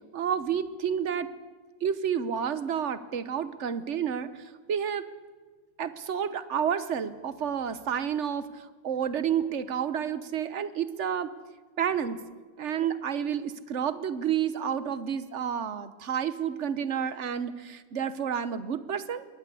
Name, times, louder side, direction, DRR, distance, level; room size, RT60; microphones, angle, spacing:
voice 1, 0.1-1.3 1.8-5.1 5.8-11.3 11.8-12.2 12.6-19.3, right 8 dB, 55° right, 14 dB, 1.3 m, -30 dB
22.0 x 18.5 x 8.3 m, 1.4 s
omnidirectional pair, 1.6 m